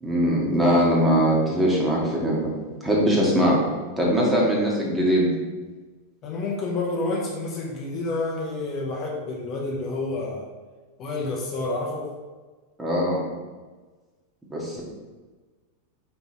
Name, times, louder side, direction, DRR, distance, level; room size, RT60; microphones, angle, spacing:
voice 1, 0.0-2.5 2.8-3.6 4.0-5.3 12.8-13.2 14.5-14.8, equal, 10° right, -3 dB, 1.6 m, -21 dB
voice 2, 6.2-10.5 11.0-12.1 14.7-14.8, left 2 dB, 35° left, -1 dB, 1.0 m, -29 dB
5.3 x 4.5 x 4.3 m, 1.3 s
figure-of-eight pair, 90°, 0 cm